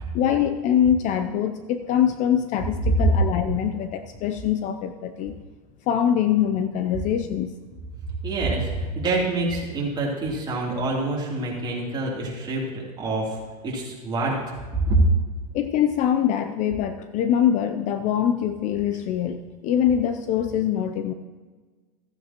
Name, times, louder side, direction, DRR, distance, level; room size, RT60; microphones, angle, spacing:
voice 1, 0.1-5.4 5.9-7.5 15.5-21.1, left 9 dB, 35° left, 9 dB, 0.5 m, -23 dB
voice 2, 8.2-13.4 13.6-15.0, right 2 dB, 20° right, -4 dB, 3.1 m, -26 dB
15.0 x 9.3 x 3.0 m, 1.4 s
supercardioid pair, 135°, 21 cm